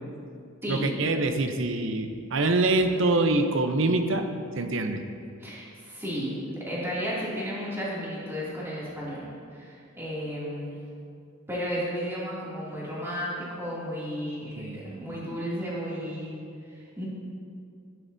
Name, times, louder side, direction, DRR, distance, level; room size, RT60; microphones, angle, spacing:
voice 1, 0.7-5.0 14.6-14.8, right 2 dB, 60° right, 6 dB, 0.7 m, -25 dB
voice 2, 5.4-9.2 9.5-10.8 11.5-16.4 16.7-17.1, equal, 10° right, -8 dB, 2.5 m, -33 dB
12.5 x 9.6 x 2.7 m, 2.3 s
head